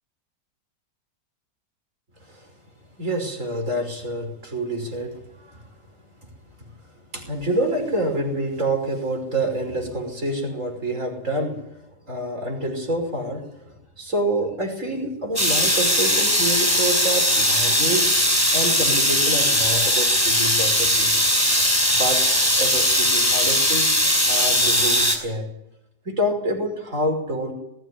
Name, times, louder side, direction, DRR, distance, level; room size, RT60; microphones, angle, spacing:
voice 1, 2.2-2.5 3.0-5.7 6.2-6.3 7.1-18.1 18.5-21.1 21.6-22.2 22.6-23.9 24.3-25.5 26.0-27.5, right 1 dB, 50° right, 2 dB, 5.9 m, -27 dB
sound 1, 15.4-25.2, equal, 10° left, 4.6 m, -19 dB
20.5 x 15.5 x 9.8 m, 0.79 s
omnidirectional pair, 1.8 m